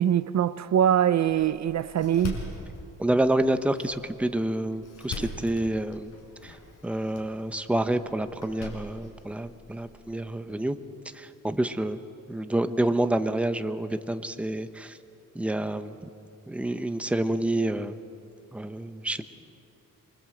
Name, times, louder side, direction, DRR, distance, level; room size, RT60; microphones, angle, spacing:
voice 1, 0.0-2.4, right 10 dB, 55° right, 0.5 m, -23 dB
Door, 1.3-10.3, left 3 dB, 65° left, 5.1 m, -43 dB
voice 2, 3.0-6.1 6.4-10.8 11.1-12.0 12.3-15.0 15.3-16.0 16.5-18.0 18.5-19.2, right 1 dB, 5° right, 0.7 m, -28 dB
25.0 x 23.5 x 7.7 m
wide cardioid pair, 155°, 34 cm